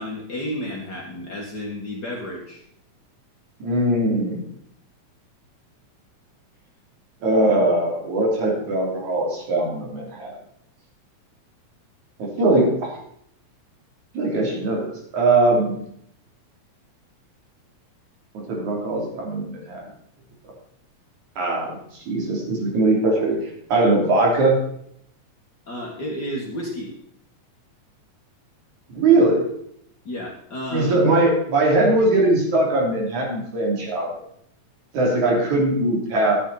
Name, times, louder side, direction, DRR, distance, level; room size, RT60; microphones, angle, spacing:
voice 1, 0.0-2.6 25.7-26.9 30.1-31.0, left 1 dB, 40° left, -2 dB, 2.1 m, -31 dB
voice 2, 3.6-4.4 7.2-10.3 12.2-12.9 14.1-15.8 18.3-19.8 21.4-23.4 23.7-24.6 28.9-29.4 30.7-34.1 34.9-36.4, right 2 dB, 75° right, -2 dB, 4.4 m, -20 dB
13.0 x 8.8 x 4.1 m, 0.70 s
omnidirectional pair, 3.4 m